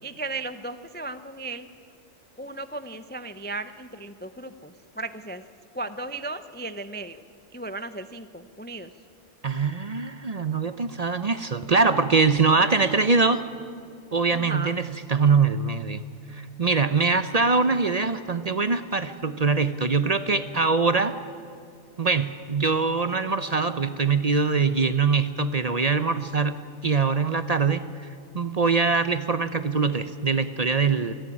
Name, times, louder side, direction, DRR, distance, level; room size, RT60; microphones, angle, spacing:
voice 1, 0.0-1.7 2.4-5.4 5.7-7.2 7.5-8.9 14.3-14.8, right 2 dB, 15° left, 11 dB, 0.4 m, -35 dB
voice 2, 9.4-13.4 14.1-16.0 16.3-21.1 22.0-26.6 26.8-27.8 28.3-31.1, right 4 dB, 40° right, 11 dB, 0.6 m, -23 dB
26.5 x 11.5 x 9.9 m, 2.3 s
omnidirectional pair, 1.2 m